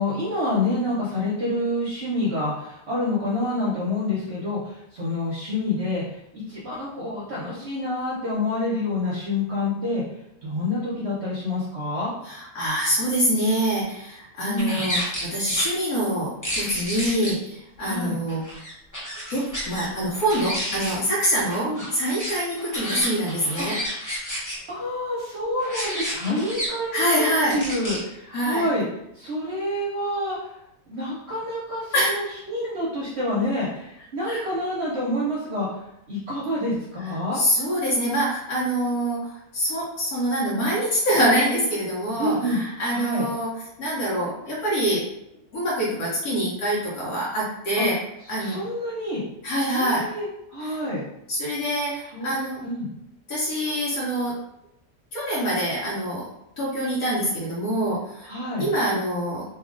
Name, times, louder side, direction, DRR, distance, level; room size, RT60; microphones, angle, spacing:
voice 1, 0.0-10.0 10.4-12.1 14.4-14.8 17.8-18.2 21.6-21.8 23.6-23.7 24.7-28.8 29.1-30.5 30.9-35.7 36.1-37.4 42.2-42.6 42.9-43.3 47.8-47.9 48.4-49.2 49.7-51.0 52.1-52.3 52.6-52.9 58.2-58.7, left 1 dB, 55° right, -7 dB, 1.0 m, -27 dB
voice 2, 12.2-15.0 15.3-18.4 19.3-23.8 26.9-27.5 28.3-28.6 31.9-32.1 34.2-34.4 37.3-45.0 45.5-48.0 48.3-48.6 49.4-50.0 50.6-50.8 51.3-52.6 53.3-54.3 55.1-56.3 56.6-58.3 58.6-59.4, equal, 80° left, -6 dB, 1.4 m, -25 dB
sound 1, 14.6-15.7 16.4-17.3 18.3-19.9 20.1-21.0 21.3-24.6 25.6-26.7 27.5-28.0, equal, 15° left, 0.6 m, -31 dB
3.0 x 2.4 x 3.6 m, 0.82 s
omnidirectional pair, 1.5 m